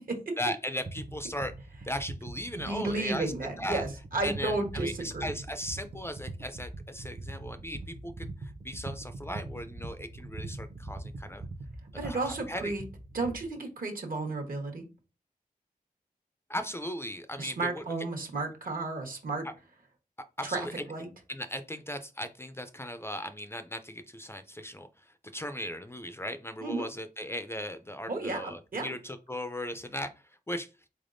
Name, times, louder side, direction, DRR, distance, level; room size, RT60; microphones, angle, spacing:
voice 1, 0.4-1.5 1.8-3.3 3.6-3.8 4.2-11.5 12.0-12.7 16.5-17.8 20.4-20.7 21.3-30.1 30.5-30.7, equal, 15° left, 9 dB, 0.3 m, -37 dB
sound 1, 0.8-13.5, right 2 dB, 50° right, 0.7 m, -42 dB
voice 2, 2.7-5.3 12.0-12.8 13.1-14.8 17.4-19.4 20.4-21.1 26.6-26.9 28.1-28.9, right 3 dB, 70° right, 3 dB, 1.1 m, -33 dB
4.0 x 3.3 x 2.5 m, 0.31 s
wide cardioid pair, 110°, 15 cm